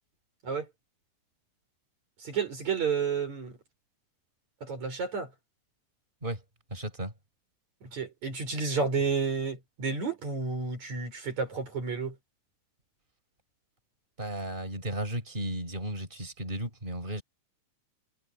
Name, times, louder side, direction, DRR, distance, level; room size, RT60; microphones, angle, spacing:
voice 1, 2.2-3.6 4.6-5.3 7.8-12.2, right 5 dB, 60° right, 7.5 m, -31 dB
voice 2, 6.7-7.1 14.2-17.2, right 1 dB, 15° right, 6.9 m, -34 dB
omnidirectional pair, 3.6 m